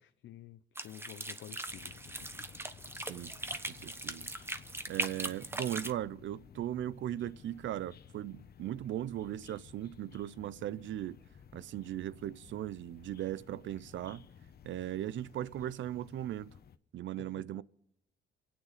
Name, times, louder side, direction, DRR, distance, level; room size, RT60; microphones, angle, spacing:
voice 1, 0.0-2.3 17.2-17.6, left 12 dB, 70° left, 0.7 m, -51 dB
sound 1, 0.8-5.9, right 2 dB, 10° right, 1.1 m, -40 dB
sound 2, 1.7-16.8, left 8 dB, 50° left, 1.0 m, -56 dB
voice 2, 3.0-3.3 3.7-4.3 4.9-11.2 11.5-14.3 14.6-16.5 16.9-17.6, right 12 dB, 70° right, 0.7 m, -38 dB
27.5 x 9.3 x 5.1 m
cardioid pair, 90°, 20 cm